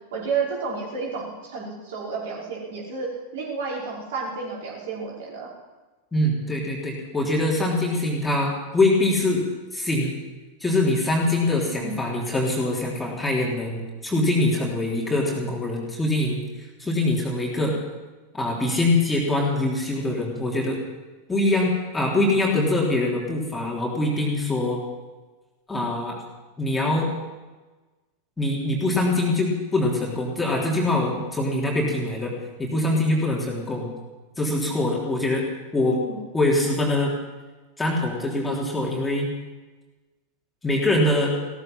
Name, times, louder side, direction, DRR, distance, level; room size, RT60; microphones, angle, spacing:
voice 1, 0.1-5.5 11.7-11.9 35.9-36.2, right 4 dB, 55° right, -4 dB, 5.4 m, -31 dB
voice 2, 6.1-9.4 9.7-10.1 10.6-16.4 16.8-17.7 18.3-20.8 21.3-24.8 25.7-26.2 26.6-27.1 28.4-32.3 32.6-33.9 34.4-35.4 35.7-36.0 36.3-37.1 37.8-39.3 40.6-41.3, left 2 dB, 10° left, -2 dB, 3.3 m, -23 dB
16.5 x 14.0 x 6.0 m, 1.2 s
figure-of-eight pair, 90°, 0 cm